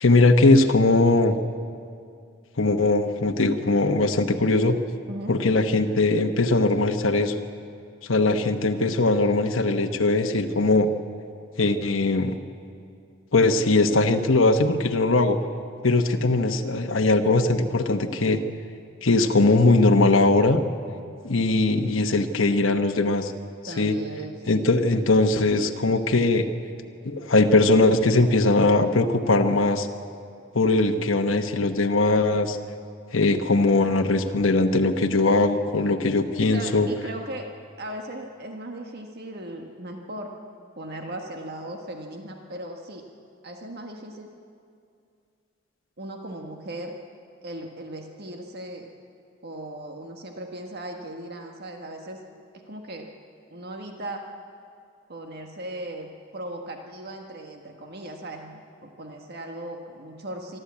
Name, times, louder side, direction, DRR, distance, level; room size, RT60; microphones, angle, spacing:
voice 1, 0.0-1.4 2.6-4.8 5.3-7.4 8.1-10.9 11.6-12.4 13.3-15.4 15.8-18.4 19.0-20.6 21.2-23.3 23.6-24.0 24.5-26.5 27.0-29.9 30.5-32.6 33.1-36.9, left 2 dB, 70° left, 5 dB, 1.1 m, -20 dB
voice 2, 23.7-24.6 35.5-36.0 36.4-37.5 37.8-40.3 40.8-43.0 43.4-44.3 46.0-47.0 47.4-48.9 49.4-52.2 52.5-53.1 53.5-54.3 55.1-60.6, right 1 dB, 55° right, 3 dB, 1.5 m, -37 dB
26.0 x 12.0 x 8.5 m, 2.4 s
head